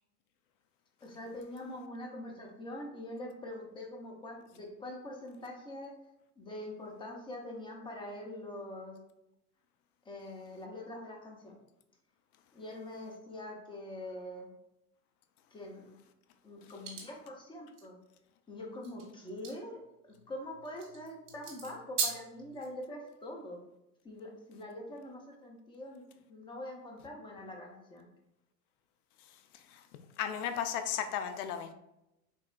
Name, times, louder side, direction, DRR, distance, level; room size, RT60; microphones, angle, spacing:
voice 1, 1.0-5.9 6.4-9.0 10.1-11.5 12.5-14.5 15.5-16.0 16.4-18.0 18.5-19.8 20.3-23.6 24.0-26.0 26.3-28.1, left 1 dB, 10° left, 0 dB, 0.4 m, -44 dB
sound 1, 16.8-17.0 17.7-17.8 18.8-22.7, right 5 dB, 40° right, 1.3 m, -38 dB
voice 2, 30.2-31.7, left 9 dB, 70° left, 8 dB, 0.6 m, -34 dB
3.6 x 2.9 x 2.4 m, 0.87 s
hypercardioid pair, 100°, 48 cm